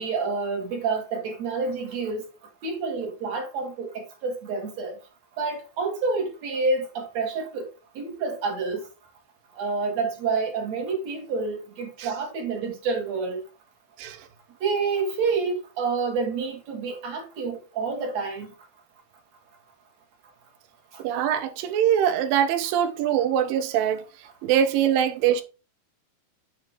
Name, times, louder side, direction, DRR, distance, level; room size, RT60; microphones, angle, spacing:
voice 1, 0.0-2.2 2.6-5.0 5.4-7.7 8.0-8.8 9.6-13.4 14.6-18.5 20.9-21.0, right 4 dB, 55° right, 2.5 m, -28 dB
voice 2, 21.0-24.0 24.4-25.4, right 9 dB, 75° right, 2.4 m, -23 dB
8.5 x 3.6 x 4.7 m
omnidirectional pair, 4.4 m